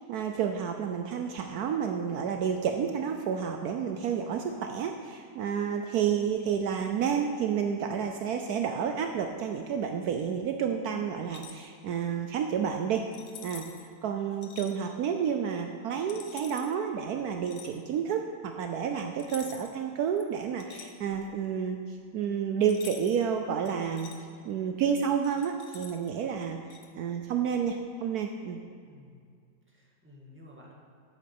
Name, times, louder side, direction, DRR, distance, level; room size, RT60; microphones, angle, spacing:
voice 1, 0.1-13.1 13.4-13.6 14.0-24.1 24.4-28.6, right 7 dB, 70° right, 4 dB, 1.1 m, -30 dB
sound 1, 11.2-11.7 13.1-13.9 14.4-14.7 16.1-16.7 17.4-17.8 19.2-19.8 20.2-21.4 22.7-23.2 23.7-24.2 25.2-26.1 26.7-26.9, left 8 dB, 90° left, 1.5 m, -47 dB
voice 2, 28.8-29.3 29.7-30.7, left 1 dB, 5° right, -3 dB, 1.7 m, -53 dB
9.4 x 8.5 x 6.0 m, 2.2 s
omnidirectional pair, 1.8 m